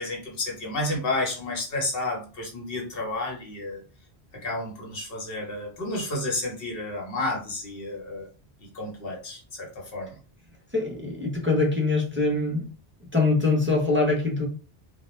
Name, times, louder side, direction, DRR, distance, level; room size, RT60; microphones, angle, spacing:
voice 1, 0.0-3.8 4.3-8.3 8.7-10.2, left 2 dB, 60° left, -2 dB, 1.1 m, -31 dB
voice 2, 10.7-12.7 13.1-14.5, left 3 dB, 15° right, -3 dB, 0.5 m, -23 dB
2.3 x 2.1 x 3.1 m, 0.36 s
omnidirectional pair, 1.1 m